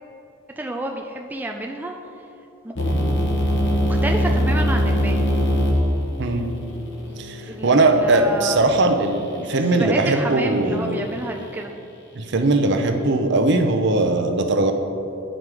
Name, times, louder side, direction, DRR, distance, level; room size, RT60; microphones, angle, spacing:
voice 1, 0.6-2.0 2.6-2.7 3.9-5.3 7.4-8.6 9.5-11.7, right 1 dB, 10° right, 1 dB, 0.3 m, -29 dB
sound 1, 2.8-8.7, equal, 60° left, 1.2 m, -22 dB
voice 2, 7.2-11.1 12.1-14.7, right 2 dB, 55° right, 5 dB, 0.6 m, -20 dB
9.2 x 5.1 x 4.7 m, 2.9 s
head